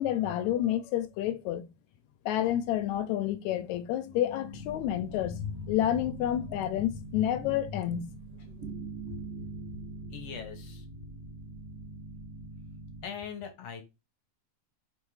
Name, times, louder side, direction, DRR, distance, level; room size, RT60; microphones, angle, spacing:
voice 1, 0.0-1.7 2.3-8.2, left 11 dB, 80° left, 1.9 m, -29 dB
sound 1, 4.5-13.1, right 2 dB, 35° right, 1.9 m, -43 dB
voice 2, 10.1-10.8 13.0-13.8, left 7 dB, 65° left, 2.0 m, -41 dB
5.6 x 3.6 x 4.8 m
omnidirectional pair, 3.4 m